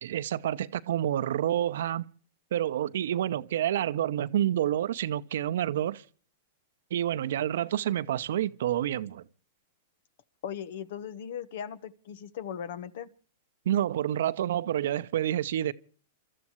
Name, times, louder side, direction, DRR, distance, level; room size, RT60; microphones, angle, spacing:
voice 1, 0.0-2.0 2.5-6.0 6.9-9.2 13.7-15.7, right 11 dB, 70° right, 0.8 m, -28 dB
voice 2, 10.4-13.1, left 8 dB, 65° left, 1.2 m, -38 dB
29.5 x 13.5 x 3.1 m
hypercardioid pair, 120°, 0 cm